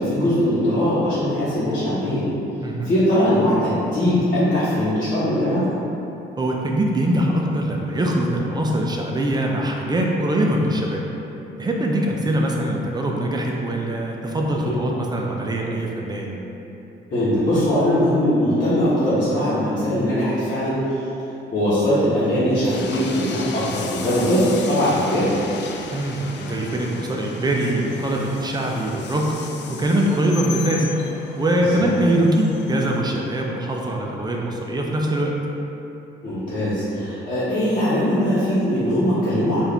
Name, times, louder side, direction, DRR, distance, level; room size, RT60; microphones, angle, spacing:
voice 1, 0.0-2.2 2.8-5.6 14.6-14.8 17.1-21.0 21.5-25.3 31.6-31.9 36.2-39.7, equal, 45° left, -14 dB, 1.3 m, -20 dB
voice 2, 2.6-2.9 6.4-11.0 11.6-16.4 25.9-29.3 29.7-30.9 31.4-35.3, right 1 dB, 20° right, -1 dB, 0.6 m, -22 dB
Train, 22.6-33.0, left 5 dB, 60° left, 0.4 m, -36 dB
4.5 x 2.6 x 3.3 m, 2.9 s
cardioid pair, 90°, 20 cm